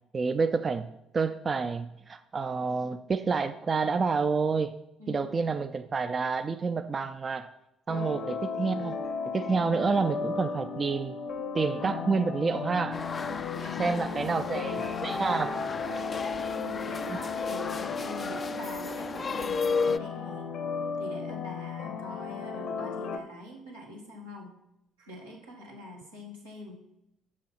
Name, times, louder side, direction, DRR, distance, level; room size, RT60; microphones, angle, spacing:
voice 1, 0.1-4.7 5.1-7.5 7.9-9.0 9.3-11.2 11.5-13.0 13.8-15.5 17.1-17.2, right 4 dB, 35° right, 9 dB, 0.4 m, -29 dB
voice 2, 5.0-5.4 7.9-8.1 13.2-15.4 16.5-20.5 21.0-24.5 25.0-26.8, left 1 dB, 90° right, -5 dB, 1.7 m, -44 dB
sound 1, 7.9-23.2, left 5 dB, 55° left, 0.8 m, -35 dB
sound 2, 12.9-20.0, left 5 dB, 35° left, 0.3 m, -34 dB
6.3 x 5.5 x 5.8 m, 0.87 s
figure-of-eight pair, 50°, 0 cm